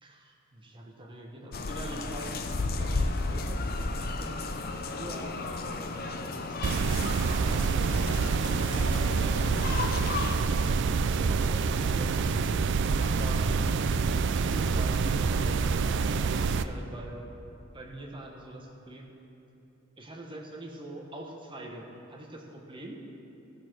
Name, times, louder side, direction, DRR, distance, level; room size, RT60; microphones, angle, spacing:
voice 1, 0.0-6.7 7.1-12.6 13.0-13.8 14.2-17.2 17.7-19.1 20.0-23.0, right 1 dB, 25° right, 0 dB, 1.3 m, -44 dB
sound 1, 1.5-10.4, left 3 dB, 50° left, 0.7 m, -33 dB
sound 2, 6.6-16.6, right 4 dB, 60° right, 0.4 m, -27 dB
15.5 x 6.7 x 6.2 m, 2.9 s
head